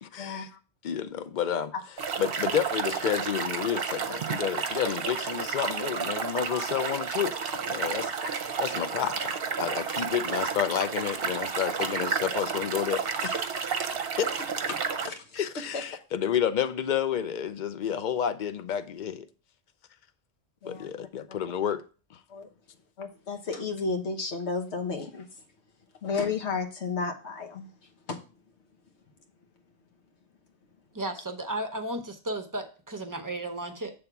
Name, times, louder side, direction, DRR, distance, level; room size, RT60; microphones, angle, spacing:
voice 1, 0.0-1.7 2.2-7.4 7.7-13.5 14.2-14.3 15.3-19.3 20.7-21.8 22.1-22.2, left 9 dB, 55° left, 0.6 m, -30 dB
sound 1, 2.0-15.1, right 6 dB, 60° right, 0.9 m, -31 dB
voice 2, 14.7-15.4 15.7-15.8 20.6-20.9 22.3-22.5 23.0-25.2 26.0-27.7 28.1-28.2, left 4 dB, 80° left, 1.3 m, -32 dB
voice 3, 30.9-33.9, right 1 dB, 20° right, 0.7 m, -34 dB
8.0 x 3.6 x 5.8 m
omnidirectional pair, 1.1 m